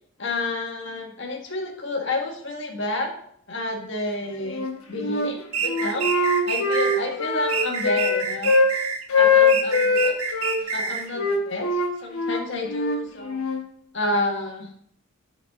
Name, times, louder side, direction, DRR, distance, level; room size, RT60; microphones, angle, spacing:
voice 1, 0.2-3.1 3.5-6.1 6.4-8.5 9.1-13.5 13.9-14.7, left 2 dB, 55° left, 1 dB, 1.6 m, -30 dB
Wind instrument woodwind instrument, 4.5-5.3 5.6-8.7 9.1-10.6 11.1-13.6, left 3 dB, 90° left, 1.2 m, -22 dB
sound 1, 5.5-7.0 7.5-9.0 9.5-11.1, right 6 dB, 85° right, 1.0 m, -28 dB
10.5 x 4.9 x 3.6 m, 0.66 s
head